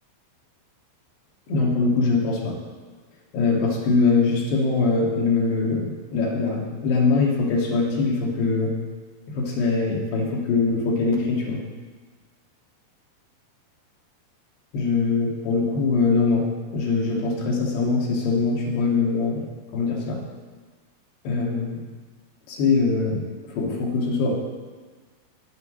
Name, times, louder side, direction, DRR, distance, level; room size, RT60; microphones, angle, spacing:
voice 1, 1.5-2.6 3.3-8.7 9.3-11.6 14.7-16.5 16.7-20.2 21.3-21.8 22.5-24.4, left 4 dB, 90° left, -2 dB, 3.8 m, -22 dB
9.7 x 8.1 x 6.2 m, 1.4 s
omnidirectional pair, 4.5 m